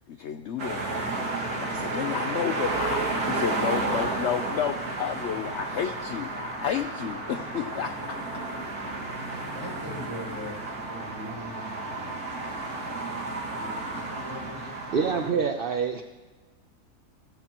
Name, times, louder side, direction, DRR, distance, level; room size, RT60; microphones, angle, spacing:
voice 1, 0.1-0.9 1.6-8.4, left 9 dB, 60° left, 9 dB, 0.8 m, -31 dB
sound 1, 0.6-15.3, right 2 dB, 75° right, 2.6 m, -32 dB
voice 2, 9.3-10.6 10.9-13.2 13.5-14.7 15.0-15.4, equal, 20° right, -3 dB, 6.6 m, -42 dB
voice 3, 14.9-16.0, right 6 dB, 45° right, 5 dB, 0.8 m, -26 dB
28.0 x 15.0 x 3.0 m, 1.4 s
omnidirectional pair, 1.6 m